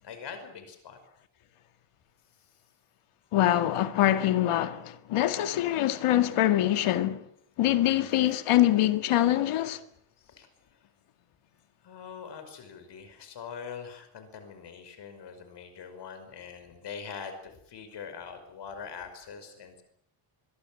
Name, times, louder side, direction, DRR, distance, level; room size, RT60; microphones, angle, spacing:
voice 1, 0.0-1.0 10.2-10.8 11.8-19.8, left 6 dB, 55° left, 5.4 m, -43 dB
voice 2, 3.3-7.2 7.6-9.8, left 13 dB, 85° left, 2.0 m, -24 dB
23.5 x 22.5 x 7.7 m
cardioid pair, 165°, 50 cm